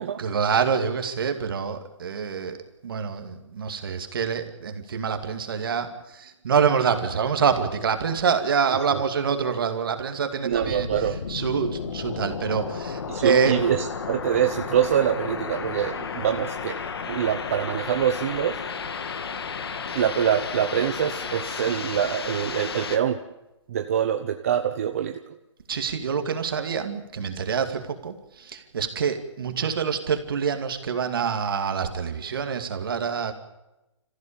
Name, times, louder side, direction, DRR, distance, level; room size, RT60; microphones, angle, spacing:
voice 1, 0.2-2.6 2.8-10.9 11.3-13.6 25.7-33.3, right 6 dB, 50° right, 7 dB, 2.5 m, -26 dB
voice 2, 10.4-11.2 13.1-16.7 17.1-18.6 19.9-23.2 23.7-25.2, right 9 dB, 30° right, 6 dB, 0.8 m, -25 dB
sound 1, 10.5-23.0, left 5 dB, 55° left, 1.7 m, -33 dB
27.5 x 15.0 x 8.8 m, 1.0 s
hypercardioid pair, 170°, 15 cm